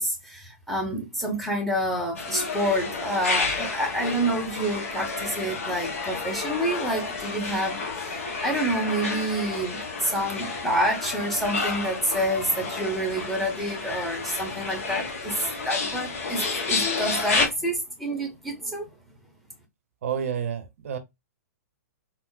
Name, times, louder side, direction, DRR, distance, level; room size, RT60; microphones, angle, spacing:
voice 1, 0.0-15.4 15.6-18.9, right 1 dB, ahead, 0.9 m, -28 dB
sound 1, 2.2-17.5, left 4 dB, 55° left, 0.8 m, -30 dB
voice 2, 20.0-21.0, right 8 dB, 55° right, 0.6 m, -29 dB
3.6 x 2.1 x 2.3 m
figure-of-eight pair, 110°, 9 cm